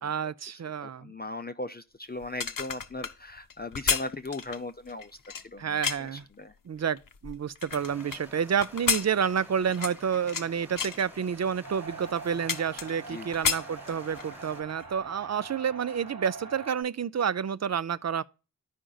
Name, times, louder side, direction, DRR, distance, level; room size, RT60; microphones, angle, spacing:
voice 1, 0.0-1.1 5.6-6.3 6.6-18.2, right 7 dB, 50° right, 0.4 m, -29 dB
voice 2, 0.8-5.1 5.5-5.8 6.1-6.5 13.1-13.3, left 2 dB, 25° left, 0.5 m, -38 dB
sound 1, 2.2-6.2 6.8-8.2 8.6-10.5 10.8-11.0 11.6-11.7 12.0-13.1 13.3-14.3 14.7-14.9, left 6 dB, 65° left, 0.7 m, -31 dB
sound 2, 7.7-14.6, left 1 dB, 5° right, 1.4 m, -50 dB
sound 3, 11.6-16.8, right 4 dB, 80° right, 1.3 m, -44 dB
14.0 x 5.1 x 2.3 m
wide cardioid pair, 60°, 36 cm